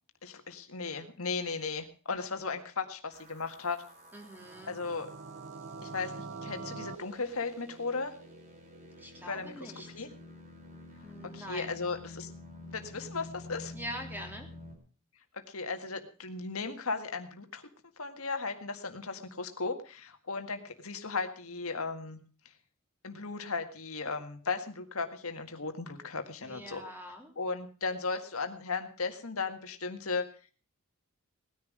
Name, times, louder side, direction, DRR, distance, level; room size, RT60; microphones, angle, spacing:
voice 1, 0.2-3.8 4.6-5.1 5.8-8.1 9.3-10.1 11.2-12.3 12.7-13.7 15.3-17.7 18.0-22.2 23.0-26.8 27.4-30.3, left 4 dB, 70° left, 7 dB, 1.8 m, -36 dB
sound 1, 3.1-14.7, left 1 dB, 40° right, 4.2 m, -49 dB
voice 2, 4.1-4.8 9.0-10.0 11.0-11.8 13.7-14.5 26.4-27.3, equal, 10° right, 3 dB, 3.3 m, -44 dB
sound 2, 4.4-7.0, right 4 dB, 55° right, 0.9 m, -43 dB
19.0 x 10.5 x 5.0 m, 0.38 s
head